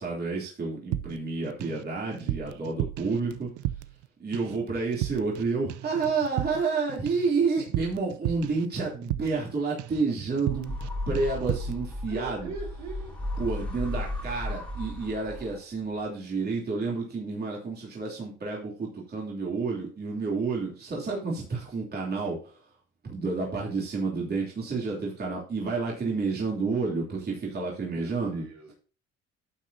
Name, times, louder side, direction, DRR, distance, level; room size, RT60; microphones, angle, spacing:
voice 1, 0.0-3.5 4.2-10.7 11.1-12.5 13.4-22.6 23.0-28.4, right 4 dB, 35° right, -3 dB, 3.1 m, -30 dB
sound 1, 0.9-1.8 2.1-4.1 4.3-4.6 4.9-5.4 5.7-9.5 9.8-10.1 10.4-10.9 11.2-11.8, right 14 dB, 85° right, 0.7 m, -34 dB
sound 2, 10.5-15.8, left 1 dB, 5° left, 2.7 m, -35 dB
voice 2, 12.1-13.2 27.9-28.7, right 3 dB, 65° right, -1 dB, 4.2 m, -41 dB
12.0 x 7.9 x 2.8 m, 0.38 s
cardioid pair, 115°, 29 cm